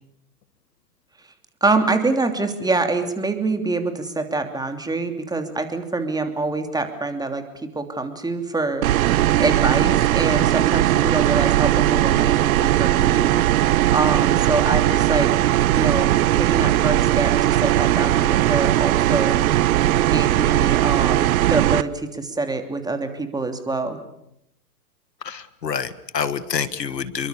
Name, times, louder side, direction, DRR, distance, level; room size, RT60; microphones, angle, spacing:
voice 1, 1.6-7.4 7.7-8.9 9.4-13.3 13.9-15.3 15.7-19.4 20.0-24.0, right 3 dB, 10° right, 6 dB, 3.0 m, -25 dB
sound 1, 8.8-21.8, right 14 dB, 60° right, 1.0 m, -18 dB
voice 2, 25.2-27.3, left 7 dB, 90° left, 15 dB, 1.6 m, -27 dB
27.5 x 23.0 x 7.0 m, 0.79 s
hypercardioid pair, 110°, 48 cm